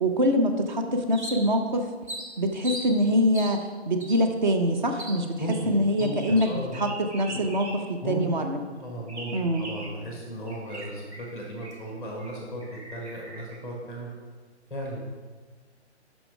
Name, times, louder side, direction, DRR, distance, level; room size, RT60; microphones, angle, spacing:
voice 1, 0.0-1.9 2.4-5.3 5.7-6.9 7.1-8.6 9.3-9.7, equal, 40° right, 5 dB, 0.7 m, -24 dB
sound 1, 1.1-1.7 2.1-2.9 3.3-3.6 4.0-4.2 5.0-5.2 5.5-8.0 8.3-8.4 9.1-10.0 10.5-11.9 12.2-12.3 12.6-13.6, right 1 dB, 75° right, 2.0 m, -40 dB
voice 2, 5.4-6.8 8.0-8.2 8.8-12.6 12.9-14.1 14.7-15.0, right 1 dB, 5° right, -1 dB, 0.6 m, -35 dB
5.9 x 5.4 x 4.9 m, 1.4 s
figure-of-eight pair, 140°, 35 cm